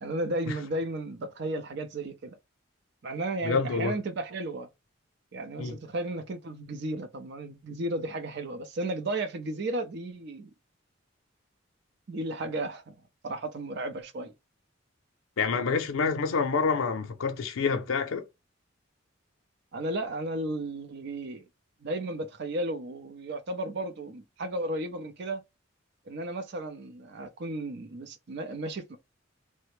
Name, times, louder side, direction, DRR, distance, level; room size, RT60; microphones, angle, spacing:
voice 1, 0.0-2.4 3.0-4.7 5.3-10.5 12.1-12.9 13.2-14.3 19.7-21.4 21.8-25.4 26.1-29.0, right 1 dB, 60° right, 0.5 m, -34 dB
voice 2, 3.4-4.0 5.6-5.8 15.4-18.2, left 5 dB, 85° left, 0.5 m, -27 dB
3.2 x 2.0 x 3.0 m
head